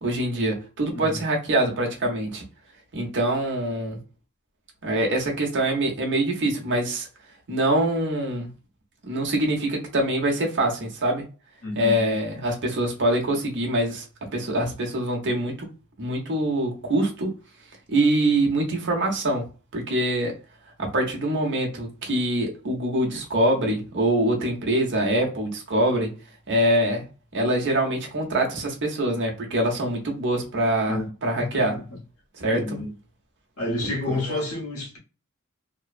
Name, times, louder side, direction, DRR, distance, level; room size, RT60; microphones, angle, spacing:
voice 1, 0.0-2.4 2.9-4.0 4.8-7.1 7.5-8.5 9.0-11.2 11.8-15.7 16.0-17.3 17.9-19.4 19.7-20.3 20.8-26.1 26.5-27.0 27.3-31.7 32.4-32.6 34.1-34.4, right 1 dB, 55° right, 0.9 m, -24 dB
voice 2, 11.6-12.1 30.9-31.1 31.3-31.8 32.5-32.9 33.6-35.0, left 2 dB, 70° left, 1.1 m, -29 dB
3.0 x 2.1 x 2.4 m
head